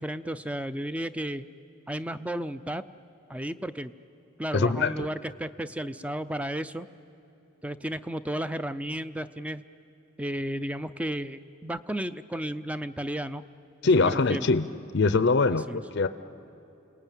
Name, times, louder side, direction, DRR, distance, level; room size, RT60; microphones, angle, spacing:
voice 1, 0.0-1.4 1.9-2.8 3.3-3.9 4.4-6.9 7.6-9.6 10.2-13.4 14.0-14.5 15.5-15.8, right 1 dB, 5° right, 12 dB, 0.5 m, -33 dB
voice 2, 4.5-5.1 13.8-14.7 14.9-16.1, left 3 dB, 60° left, 11 dB, 0.6 m, -23 dB
29.5 x 19.5 x 9.1 m, 3.0 s
head